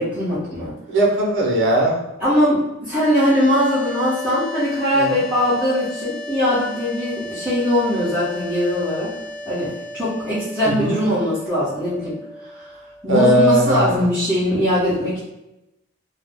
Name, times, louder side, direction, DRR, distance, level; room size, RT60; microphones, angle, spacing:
voice 1, 0.0-0.7 2.2-9.1 9.4-12.1 12.6-12.7 13.0-15.2, equal, 10° right, -14 dB, 0.9 m, -21 dB
voice 2, 0.9-2.0 5.0-5.2 10.8-10.9 13.1-14.0, right 1 dB, 65° right, -1 dB, 0.7 m, -18 dB
sound 1, 2.9-14.0, left 1 dB, 50° left, 0.4 m, -35 dB
2.4 x 2.0 x 3.4 m, 0.90 s
head